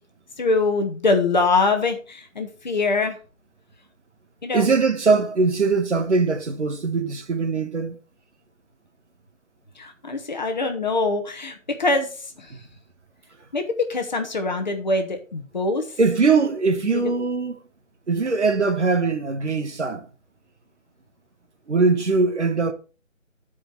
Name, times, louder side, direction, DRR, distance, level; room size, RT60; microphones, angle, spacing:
voice 1, 0.4-3.2 4.4-4.7 9.8-11.5 11.8-12.1 13.5-15.8 16.9-17.0, left 3 dB, 35° left, 1.4 m, -23 dB
voice 2, 4.5-7.9 16.0-17.6 18.1-20.1 21.7-22.7, right 4 dB, 55° right, 1.6 m, -21 dB
10.0 x 5.0 x 6.0 m
figure-of-eight pair, 170°, 40 cm